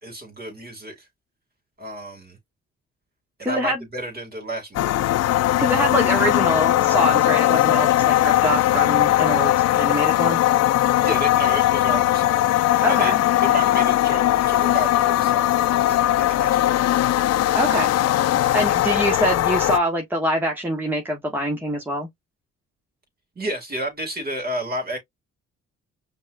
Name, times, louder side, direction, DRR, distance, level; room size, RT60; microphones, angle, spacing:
voice 1, 0.0-1.1 1.8-2.4 3.4-5.0 11.0-12.5 12.9-13.1 13.4-17.2 23.4-25.0, right 1 dB, 30° right, 2.3 m, -32 dB
voice 2, 3.4-3.8 5.6-10.4 12.8-13.2 17.5-17.9 18.5-22.1, right 1 dB, 5° right, 1.2 m, -24 dB
sound 1, 4.7-19.8, left 13 dB, 60° left, 0.5 m, -19 dB
5.3 x 2.3 x 2.5 m
cardioid pair, 90°, 30 cm